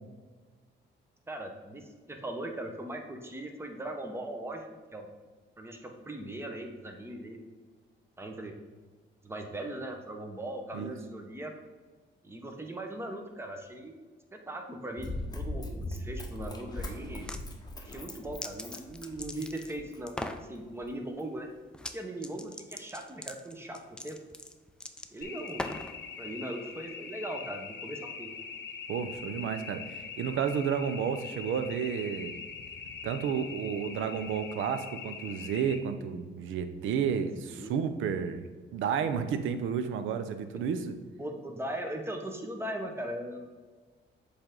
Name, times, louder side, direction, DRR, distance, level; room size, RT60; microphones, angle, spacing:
voice 1, 1.3-5.1 5.6-7.4 8.2-8.5 9.2-11.5 12.2-13.9 14.3-15.1 15.3-17.3 17.9-21.5 21.9-24.2 25.1-25.8 26.2-28.3 37.4-37.7 40.5-40.7 41.2-43.5, right 1 dB, 10° right, 3 dB, 0.9 m, -39 dB
Run, 15.0-20.2 20.8-20.9, left 1 dB, 20° left, 0.9 m, -40 dB
sound 1, 17.0-17.4 17.9-19.7 20.1-20.5 21.7-22.0 22.2-26.0, left 1 dB, 5° left, 0.4 m, -40 dB
sound 2, 25.2-35.8, left 6 dB, 60° left, 0.8 m, -43 dB
voice 2, 28.9-32.3 33.0-40.9, right 7 dB, 80° right, 10 dB, 0.6 m, -31 dB
7.2 x 3.4 x 3.8 m, 1.4 s
cardioid pair, 90°, 20 cm